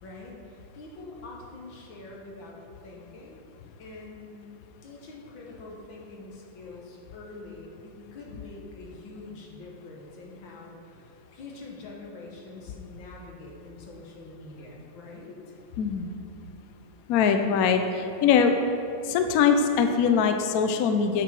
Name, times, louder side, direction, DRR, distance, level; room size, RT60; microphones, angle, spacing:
voice 1, 0.0-2.6 2.8-3.4 3.8-4.5 4.8-15.4, left 3 dB, 85° left, -2 dB, 2.0 m, -45 dB
voice 2, 15.8-16.2 17.1-18.6 19.0-21.2, left 6 dB, 70° left, 6 dB, 0.9 m, -22 dB
7.7 x 6.1 x 4.6 m, 2.7 s
omnidirectional pair, 2.0 m